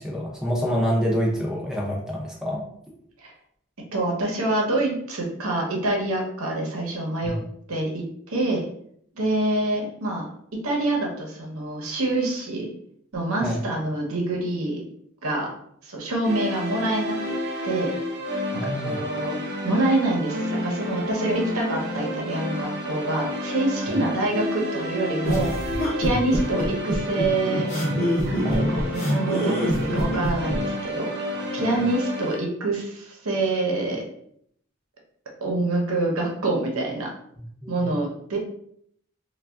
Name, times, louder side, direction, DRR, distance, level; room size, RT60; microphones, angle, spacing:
voice 1, 0.0-2.6 7.2-7.5 13.4-13.6 18.5-19.0 28.4-28.7 37.6-37.9, equal, 5° right, -3 dB, 0.5 m, -27 dB
voice 2, 3.9-7.4 7.7-8.7 9.1-10.2 10.6-12.7 13.1-14.8 15.2-15.5 15.8-17.3 17.6-17.9 18.5-19.4 19.6-25.5 26.0-27.7 28.2-31.1 31.5-34.0 35.4-37.1 37.7-38.4, right 2 dB, 85° right, -1 dB, 0.8 m, -26 dB
sound 1, 16.2-32.4, equal, 50° right, 0.6 m, -30 dB
sound 2, 25.2-30.6, equal, 35° left, 0.8 m, -26 dB
3.3 x 2.3 x 2.3 m, 0.67 s
head